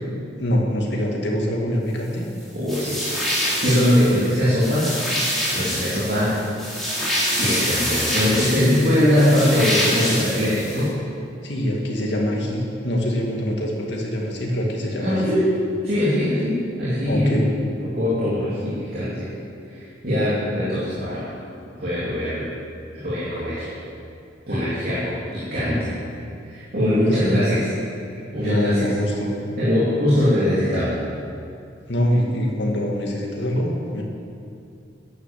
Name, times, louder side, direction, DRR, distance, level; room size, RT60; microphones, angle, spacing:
voice 1, 0.4-2.3 11.4-15.3 17.1-17.5 27.1-27.4 28.4-29.3 31.9-34.0, equal, 65° left, -1 dB, 2.3 m, -24 dB
voice 2, 2.5-3.1 3.4-4.9 5.5-6.4 7.4-10.9 15.0-15.4 15.8-17.4 17.9-19.3 19.7-21.3 21.8-22.5 22.9-23.7 24.5-25.9 26.5-27.7 28.3-28.9 29.6-31.0, left 1 dB, 50° right, -9 dB, 3.0 m, -21 dB
sound 1, 2.7-10.8, equal, ahead, 4.1 m, -26 dB
11.0 x 10.5 x 7.6 m, 2.4 s
head